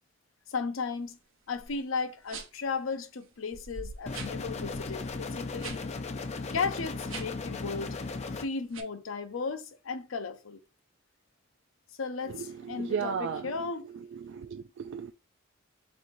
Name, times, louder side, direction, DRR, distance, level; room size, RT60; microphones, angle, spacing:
voice 1, 0.5-1.2 1.5-5.9 6.4-8.0 8.4-10.6 12.0-13.9, left 4 dB, 80° left, 0.6 m, -35 dB
sound 1, 1.6-1.8 2.3-2.7 3.2-3.3 3.5-5.8 6.1-6.3 7.0-7.5 7.9-8.2 8.7-8.8, right 5 dB, 80° right, 0.8 m, -44 dB
sound 2, 4.1-8.5, left 3 dB, 35° left, 0.4 m, -36 dB
voice 2, 12.3-13.5 14.1-15.1, right 6 dB, 65° right, 0.3 m, -35 dB
4.6 x 4.1 x 2.6 m
head